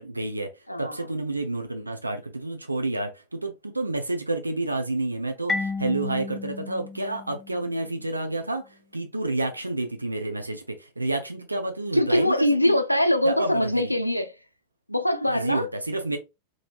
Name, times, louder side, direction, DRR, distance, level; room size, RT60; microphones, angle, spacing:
voice 1, 0.0-0.5 0.8-12.8 13.2-13.9 15.3-16.2, right 2 dB, 85° right, 0.4 m, -29 dB
Marimba xylophone, 5.5-8.1, left 3 dB, 5° left, 0.4 m, -33 dB
voice 2, 11.9-14.3 14.9-15.7, left 1 dB, 90° left, 0.4 m, -22 dB
3.1 x 2.6 x 2.4 m
figure-of-eight pair, 90°, 0 cm